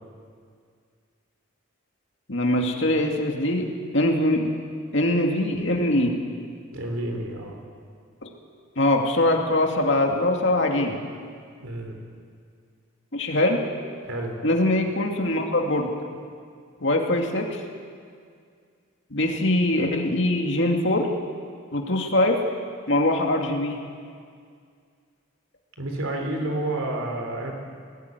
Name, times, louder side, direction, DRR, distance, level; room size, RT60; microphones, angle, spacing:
voice 1, 2.3-3.7 3.9-4.5 4.9-6.1 8.8-11.0 13.1-13.6 14.4-15.9 16.8-17.6 19.1-21.1 21.7-22.4 22.9-23.7, left 1 dB, 55° left, 1 dB, 2.4 m, -22 dB
voice 2, 6.7-7.6 11.6-12.0 14.0-14.3 25.8-27.5, right 1 dB, 85° right, 2 dB, 4.2 m, -29 dB
19.0 x 17.0 x 9.6 m, 2.1 s
head